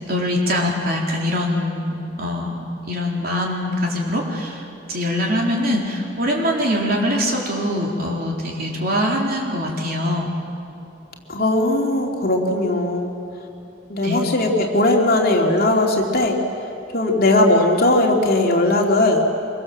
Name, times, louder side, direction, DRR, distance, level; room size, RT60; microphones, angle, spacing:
voice 1, 0.0-4.6 4.9-10.3 14.0-14.2, left 1 dB, 55° right, -1 dB, 4.0 m, -23 dB
voice 2, 11.3-13.1 13.9-16.4 16.9-19.2, left 2 dB, 50° left, 0 dB, 3.0 m, -18 dB
25.0 x 24.0 x 7.5 m, 2.8 s
head